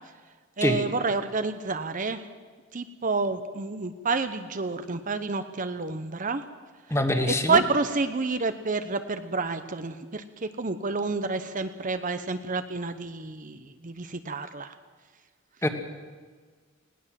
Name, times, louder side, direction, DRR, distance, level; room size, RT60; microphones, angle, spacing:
voice 1, 0.6-2.2 2.7-6.4 7.5-14.7, right 4 dB, 40° right, 10 dB, 0.8 m, -29 dB
voice 2, 6.9-7.6 15.6-15.7, left 1 dB, 15° left, 6 dB, 1.6 m, -24 dB
19.5 x 18.0 x 7.6 m, 1.5 s
head